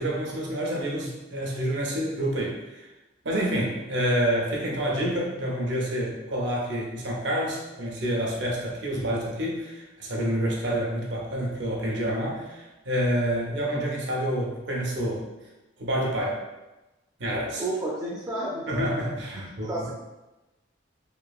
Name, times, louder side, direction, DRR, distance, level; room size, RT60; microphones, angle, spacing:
voice 1, 0.0-2.9 3.2-15.2 15.8-16.4 17.2-17.6 18.7-19.7, equal, 65° right, -2 dB, 0.6 m, -28 dB
voice 2, 17.6-18.7 19.4-19.9, right 2 dB, 20° right, -6 dB, 0.3 m, -31 dB
2.9 x 2.3 x 2.3 m, 1.0 s
head